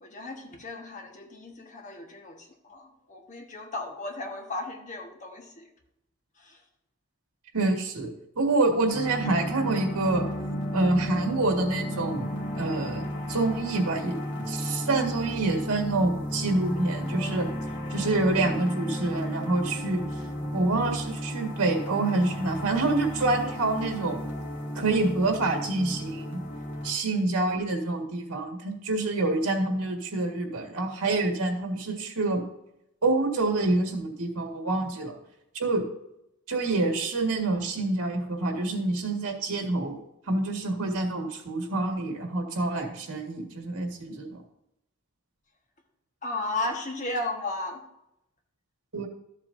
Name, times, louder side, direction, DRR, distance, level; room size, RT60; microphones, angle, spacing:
voice 1, 0.0-5.7 6.4-6.6 17.1-17.4 46.2-47.9, left 2 dB, 35° left, 1 dB, 1.3 m, -35 dB
voice 2, 7.5-10.2 10.7-17.5 17.9-20.0 20.5-24.2 24.8-26.4 26.8-32.4 33.0-35.1 35.6-35.9 36.5-40.0 40.3-44.4 48.9-49.1, right 2 dB, 90° right, 3 dB, 1.7 m, -27 dB
sound 1, 8.9-26.9, equal, 50° left, 2.2 m, -33 dB
13.0 x 7.5 x 2.7 m, 0.82 s
head